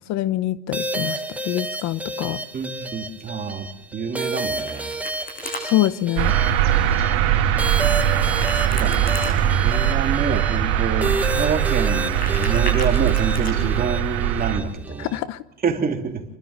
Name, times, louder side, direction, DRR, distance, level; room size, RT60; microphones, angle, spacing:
voice 1, 0.1-2.4 5.6-6.3 15.0-15.4, left 14 dB, 55° left, 15 dB, 0.9 m, -25 dB
sound 1, 0.7-15.2, right 2 dB, 5° right, 1.4 m, -31 dB
voice 2, 2.5-4.9 8.5-15.1 15.6-16.2, right 5 dB, 30° right, 3 dB, 3.0 m, -27 dB
Domestic sounds home sounds, 4.2-5.6 8.2-9.3 11.9-13.5, left 1 dB, 25° left, 7.2 m, -35 dB
sound 2, 6.2-14.6, right 10 dB, 70° right, 3.5 m, -21 dB
28.0 x 12.5 x 7.3 m, 0.82 s
supercardioid pair, 120°, 32 cm